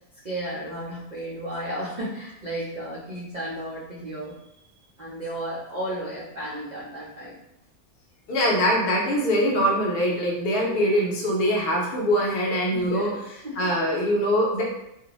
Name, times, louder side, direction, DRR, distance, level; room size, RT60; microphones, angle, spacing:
voice 1, 0.2-4.3 5.0-7.3 12.7-13.7, right 1 dB, 70° right, -7 dB, 0.4 m, -33 dB
voice 2, 8.3-14.6, equal, 55° left, -3 dB, 0.7 m, -23 dB
2.6 x 2.1 x 2.9 m, 0.84 s
omnidirectional pair, 1.6 m